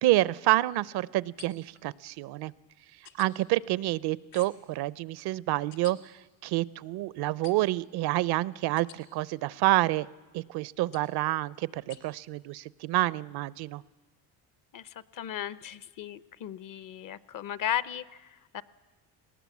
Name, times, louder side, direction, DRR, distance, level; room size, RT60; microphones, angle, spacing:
voice 1, 0.0-2.5 3.2-6.1 6.4-10.1 10.3-13.8, right 17 dB, 65° right, 21 dB, 0.6 m, -28 dB
sound 1, 1.4-1.8 3.0-3.3 4.3-4.7 5.7-5.9 7.4-7.8 8.8-9.0 10.9-11.2 11.9-12.0, left 9 dB, 65° left, 2.5 m, -50 dB
voice 2, 14.7-18.6, left 10 dB, 50° left, 18 dB, 0.8 m, -36 dB
19.0 x 18.5 x 8.3 m, 1.2 s
supercardioid pair, 90°, 43 cm